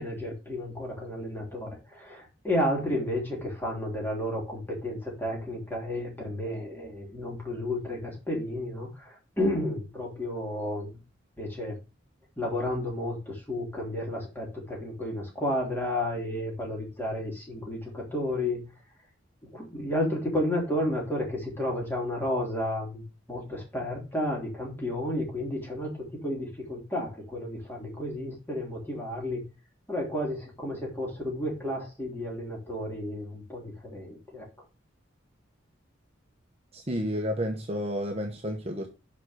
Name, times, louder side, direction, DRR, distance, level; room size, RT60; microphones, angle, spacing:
voice 1, 0.0-11.0 11.4-11.8 12.4-18.7 19.5-29.5 29.9-34.5, left 1 dB, 10° left, 3.2 m, -32 dB
voice 2, 36.7-38.9, equal, 30° right, 1.1 m, -31 dB
6.2 x 5.5 x 6.2 m
head